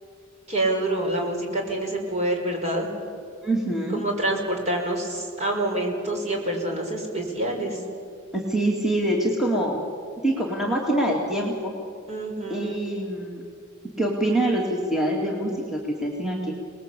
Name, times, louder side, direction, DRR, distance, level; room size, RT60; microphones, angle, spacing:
voice 1, 0.5-2.9 3.9-7.8 12.1-12.8, right 1 dB, 35° right, 0 dB, 5.4 m, -27 dB
voice 2, 3.4-4.0 8.3-9.8 10.2-11.7 12.5-13.4 14.0-16.5, right 1 dB, 5° right, -2 dB, 2.6 m, -25 dB
29.0 x 20.0 x 8.4 m, 2.4 s
head